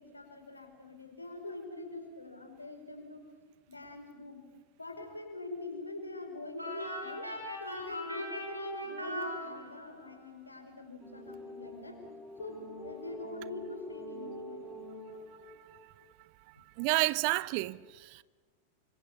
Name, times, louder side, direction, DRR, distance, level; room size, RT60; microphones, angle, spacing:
voice 1, 0.0-3.2 3.7-4.4 4.8-7.3 7.6-12.0 12.4-14.7, left 2 dB, 80° left, 4.8 m, -44 dB
sound 1, 6.6-10.1, equal, 85° right, 5.4 m, -39 dB
sound 2, 11.0-16.1, equal, 5° left, 5.6 m, -46 dB
voice 2, 15.4-15.8 16.8-18.2, right 22 dB, 45° right, 0.8 m, -31 dB
29.0 x 25.5 x 7.1 m
figure-of-eight pair, 90°, 0 cm